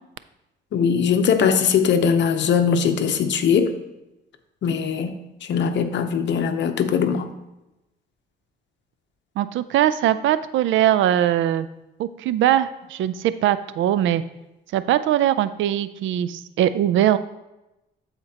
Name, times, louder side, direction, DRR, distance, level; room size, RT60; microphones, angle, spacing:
voice 1, 0.7-3.7 4.6-5.1 5.4-7.3, left 6 dB, 65° left, 8 dB, 0.8 m, -20 dB
voice 2, 9.4-11.7 12.0-14.2 14.7-17.2, right 11 dB, 75° right, 14 dB, 0.4 m, -21 dB
13.0 x 4.4 x 2.9 m, 0.95 s
cardioid pair, 90°, 20 cm